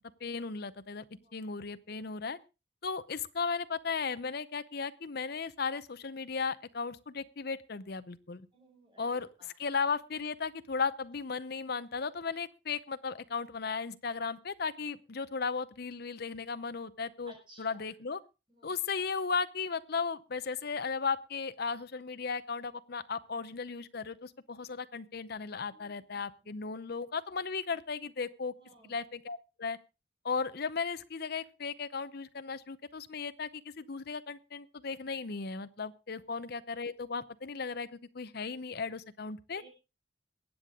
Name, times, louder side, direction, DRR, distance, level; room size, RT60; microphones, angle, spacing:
voice 1, 0.2-1.0 1.3-2.4 2.8-8.5 9.0-18.2 18.6-28.5 28.8-29.8 30.2-39.6, left 5 dB, 55° left, 13 dB, 0.7 m, -36 dB
voice 2, 8.5-9.5 17.3-17.8 18.5-18.7 25.7-26.5 28.6-29.0 39.6-39.7, right 1 dB, 25° right, 0 dB, 5.7 m, -59 dB
22.5 x 8.3 x 3.7 m, 0.29 s
head